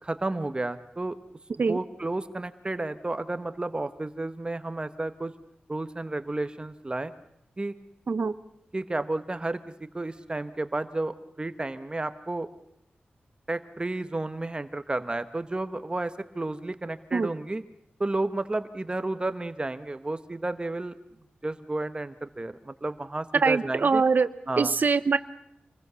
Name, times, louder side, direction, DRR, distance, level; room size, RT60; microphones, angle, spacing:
voice 1, 0.0-1.2 1.7-5.3 5.7-7.1 7.6-7.7 8.7-9.6 9.9-12.5 13.5-17.6 18.0-20.9 21.4-24.0 24.5-24.7, right 2 dB, 25° right, 11 dB, 1.1 m, -32 dB
voice 2, 23.4-24.3 24.6-25.2, right 4 dB, 60° right, 13 dB, 0.9 m, -23 dB
26.5 x 20.5 x 7.0 m, 0.76 s
wide cardioid pair, 100°, 4 cm